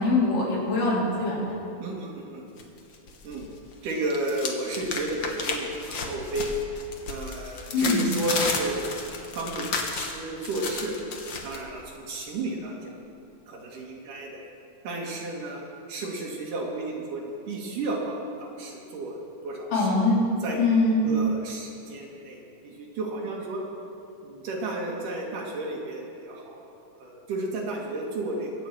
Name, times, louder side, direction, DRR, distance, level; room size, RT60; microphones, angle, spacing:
voice 1, 0.0-1.5 7.7-8.1 19.7-20.1 20.6-21.1, left 3 dB, 80° left, -6 dB, 5.0 m, -23 dB
voice 2, 1.8-2.5 3.2-3.5 3.8-6.5 7.1-10.9 11.4-12.9 13.5-14.4 14.8-19.9 20.4-23.6 24.2-26.7 27.0-28.5, right 2 dB, 75° right, -2 dB, 3.6 m, -33 dB
sound 1, 2.6-3.4 3.7-11.6, left 4 dB, 65° left, 1.2 m, -33 dB
23.5 x 8.4 x 4.8 m, 2.8 s
omnidirectional pair, 3.8 m